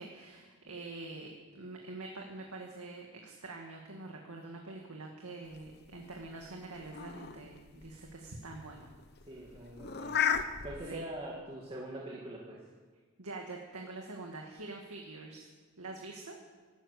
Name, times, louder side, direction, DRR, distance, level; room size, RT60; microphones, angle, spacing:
voice 1, 0.0-8.9 9.3-9.6 10.8-11.0 13.2-15.5 15.8-16.4, right 2 dB, 80° right, 1 dB, 1.9 m, -45 dB
sound 1, 5.5-10.8, left 7 dB, 45° left, 0.9 m, -36 dB
voice 2, 9.3-10.2 10.6-12.6, right 1 dB, 25° right, -4 dB, 2.1 m, -43 dB
13.5 x 12.5 x 8.1 m, 1.4 s
head